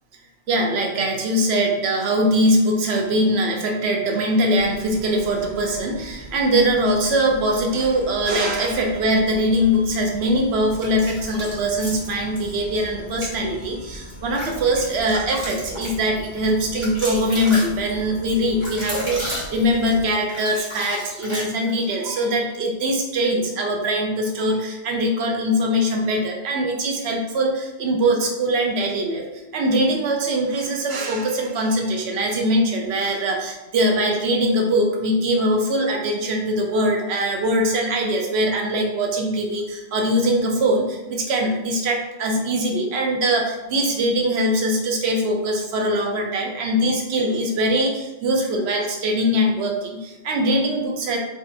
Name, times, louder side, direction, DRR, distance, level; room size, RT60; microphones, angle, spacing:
voice 1, 0.5-29.3 29.5-51.2, equal, 80° right, 1 dB, 0.9 m, -22 dB
sound 1, 4.5-20.1, equal, 85° left, 1.0 m, -40 dB
sound 2, 10.8-12.4 13.1-13.4 13.9-21.9, equal, 30° right, 1.2 m, -33 dB
3.9 x 2.6 x 2.4 m, 1.0 s
omnidirectional pair, 1.1 m